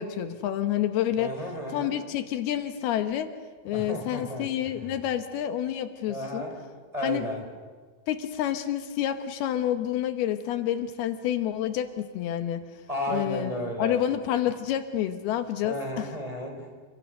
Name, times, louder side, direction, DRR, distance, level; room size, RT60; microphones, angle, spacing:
voice 1, 0.0-1.3 1.7-3.3 3.6-6.4 7.0-7.3 8.1-12.6 13.1-16.1, left 11 dB, 80° left, 8 dB, 3.1 m, -28 dB
voice 2, 1.2-1.9 3.7-4.5 4.7-4.9 6.1-6.6 6.9-7.4 12.9-14.0 15.6-16.7, equal, 10° right, 1 dB, 4.7 m, -33 dB
29.5 x 26.5 x 6.5 m, 1.5 s
omnidirectional pair, 4.5 m